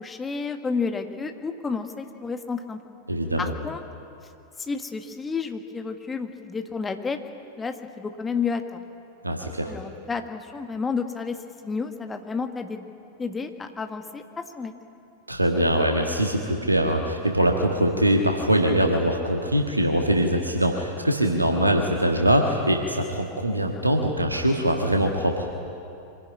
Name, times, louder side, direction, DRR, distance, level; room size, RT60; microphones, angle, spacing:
voice 1, 0.0-2.8 3.4-3.8 4.6-7.2 7.6-8.8 9.7-11.4 11.6-12.8 13.2-14.2 14.6-14.7, left 5 dB, 15° left, 6 dB, 1.8 m, -30 dB
voice 2, 3.1-3.5 9.2-9.7 15.3-25.5, right 1 dB, 85° right, 2 dB, 1.7 m, -22 dB
25.0 x 17.0 x 9.9 m, 2.7 s
figure-of-eight pair, 90°, 0 cm